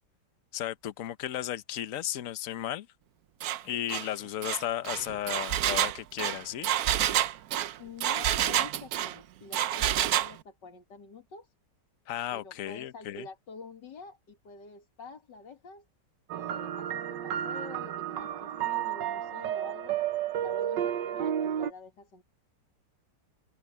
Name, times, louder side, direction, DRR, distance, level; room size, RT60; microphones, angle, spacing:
voice 1, 0.5-2.9 3.6-6.7 12.1-13.3, left 12 dB, 55° left, 1.1 m, -34 dB
Engine, 3.4-3.6 3.9-4.1 4.4-9.1 9.5-10.3, right 12 dB, 65° right, 1.0 m, -28 dB
voice 2, 3.9-4.3 7.8-11.5 12.3-15.9 16.3-20.0 20.4-22.2, left 4 dB, 85° left, 2.7 m, -47 dB
sound 1, 16.3-21.7, right 10 dB, 85° right, 1.5 m, -32 dB
open air
omnidirectional pair, 1.9 m